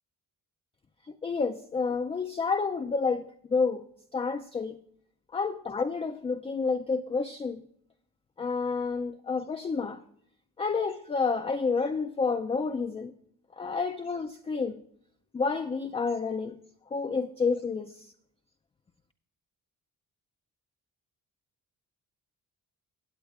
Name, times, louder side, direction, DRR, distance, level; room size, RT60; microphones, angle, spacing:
voice 1, 1.1-3.8 4.1-4.8 5.3-7.6 8.4-10.0 10.6-13.1 13.6-14.8 15.3-16.6 16.9-18.1, left 4 dB, 20° left, 0.3 m, -29 dB
17.0 x 7.9 x 2.4 m
cardioid pair, 100°, 35 cm